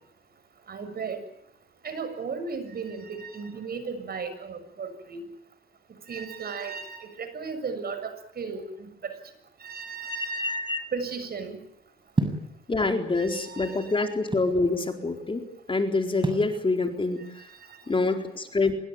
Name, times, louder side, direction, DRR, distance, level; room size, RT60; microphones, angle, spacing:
voice 1, 0.7-1.2 1.8-5.2 6.1-9.2 9.6-10.5 10.9-11.6 13.2-13.9 17.7-17.8, right 5 dB, 50° right, 10 dB, 6.9 m, -35 dB
voice 2, 10.1-10.8 12.7-17.5 17.9-18.7, left 3 dB, 25° left, 5 dB, 4.2 m, -26 dB
sound 1, 12.2-12.5 13.4-14.6 16.2-16.5, right 2 dB, 25° right, 7.2 m, -28 dB
26.0 x 22.5 x 9.0 m, 0.76 s
cardioid pair, 90°, 20 cm